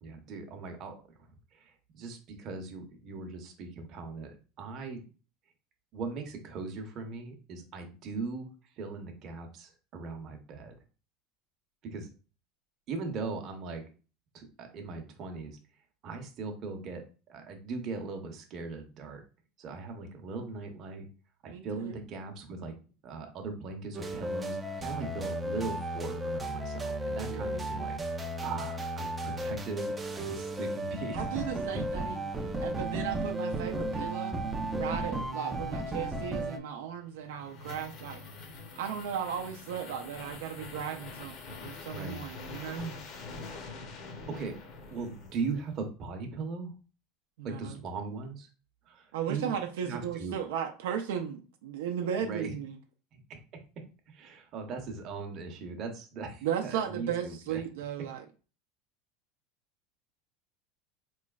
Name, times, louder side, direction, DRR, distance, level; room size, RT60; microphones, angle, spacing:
voice 1, 0.0-0.9 1.5-5.0 5.9-8.5 8.8-10.7 11.8-12.1 12.9-13.8 14.3-15.6 16.0-19.2 19.6-21.1 21.4-22.7 23.0-28.0 28.4-31.4 41.9-42.3 42.8-43.0 44.3-44.6 44.9-46.7 47.4-48.5 48.9-49.5 49.8-50.4 52.2-52.5 53.1-53.4 54.1-57.6, right 4 dB, 40° right, 4 dB, 0.7 m, -39 dB
voice 2, 21.5-22.0 27.3-27.5 31.1-32.3 32.6-34.4 34.7-38.2 38.8-42.8 47.4-47.8 49.1-52.8 56.4-58.2, right 8 dB, 90° right, 5 dB, 0.5 m, -36 dB
sound 1, 23.9-36.6, right 1 dB, 15° right, 0.4 m, -34 dB
sound 2, 37.0-45.8, left 4 dB, 45° left, 0.7 m, -45 dB
4.0 x 3.1 x 2.3 m, 0.35 s
supercardioid pair, 145°, 0 cm